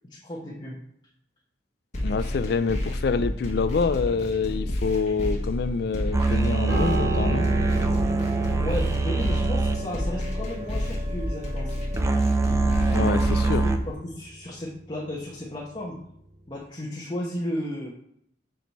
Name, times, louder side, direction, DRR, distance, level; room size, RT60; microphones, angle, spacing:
voice 1, 0.0-0.8 8.5-11.8 13.6-16.0 16.5-17.9, left 1 dB, 25° left, -5 dB, 1.0 m, -34 dB
sound 1, 1.9-13.9, left 1 dB, 40° left, 1.3 m, -30 dB
voice 2, 2.0-7.5 12.9-13.7, left 4 dB, 65° left, 13 dB, 0.4 m, -26 dB
sound 2, 6.1-13.8, right 3 dB, 15° right, 0.4 m, -25 dB
Piano, 6.7-16.1 16.3-16.6, right 1 dB, 70° right, 1.7 m, -35 dB
6.2 x 4.6 x 4.1 m, 0.72 s
head